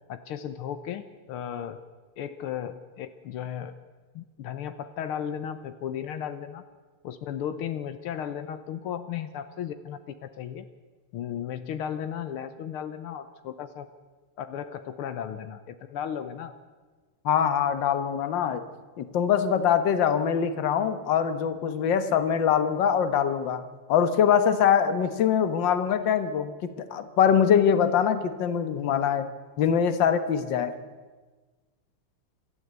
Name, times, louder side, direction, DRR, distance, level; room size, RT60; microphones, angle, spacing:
voice 1, 0.1-1.8 2.2-3.7 4.2-6.6 7.0-10.7 11.1-13.9 14.4-16.5, left 9 dB, 80° left, 10 dB, 1.8 m, -35 dB
voice 2, 17.3-18.6 19.0-23.6 23.9-29.3 29.6-30.7, left 8 dB, 60° left, 10 dB, 1.9 m, -23 dB
27.0 x 13.0 x 8.2 m, 1.4 s
omnidirectional pair, 2.4 m